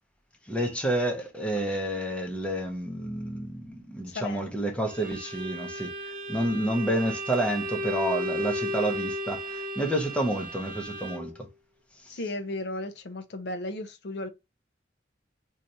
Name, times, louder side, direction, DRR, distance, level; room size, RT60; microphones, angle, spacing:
voice 1, 0.5-5.9 6.3-11.4 12.1-12.2, right 1 dB, 5° left, 0.6 m, -29 dB
voice 2, 4.1-4.5 12.1-14.3, left 2 dB, 60° left, 0.5 m, -35 dB
Bowed string instrument, 4.9-11.4, equal, 45° right, 0.6 m, -34 dB
2.7 x 2.4 x 4.0 m
head